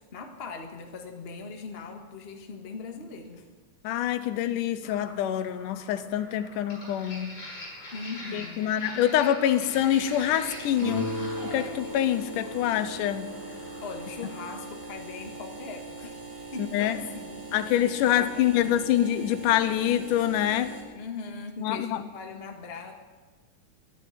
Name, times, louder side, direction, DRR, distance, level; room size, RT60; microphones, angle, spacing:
voice 1, 0.0-3.5 7.9-8.8 13.8-16.1 16.5-17.6 18.0-18.9 20.9-22.9, left 4 dB, 60° left, 3 dB, 0.6 m, -40 dB
voice 2, 3.8-7.4 8.3-11.1 11.5-13.3 16.6-16.9 17.5-20.7 21.6-22.0, left 11 dB, 85° left, 12 dB, 2.2 m, -25 dB
sound 1, 4.8-14.5, left 1 dB, 40° left, 6.4 m, -45 dB
sound 2, 9.6-20.8, right 4 dB, 40° right, 3.6 m, -42 dB
Guitar, 10.8-15.6, equal, 75° right, 5.6 m, -38 dB
12.0 x 12.0 x 8.3 m, 1.4 s
omnidirectional pair, 3.7 m